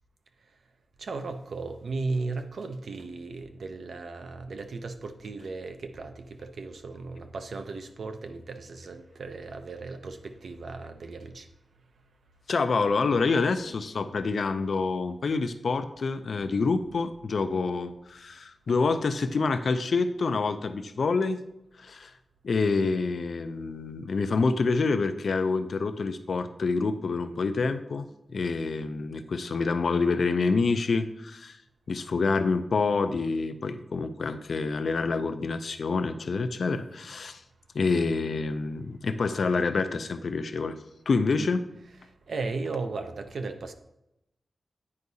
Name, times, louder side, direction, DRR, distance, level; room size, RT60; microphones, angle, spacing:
voice 1, 1.0-11.5 42.0-43.7, right 3 dB, 65° right, 7 dB, 0.5 m, -36 dB
voice 2, 12.5-21.4 21.8-22.1 22.4-28.1 28.3-31.6 31.9-37.4 37.7-40.8 41.1-41.6, left 4 dB, 60° left, 10 dB, 0.4 m, -27 dB
9.5 x 4.7 x 2.7 m, 0.85 s
wide cardioid pair, 175°, 0 cm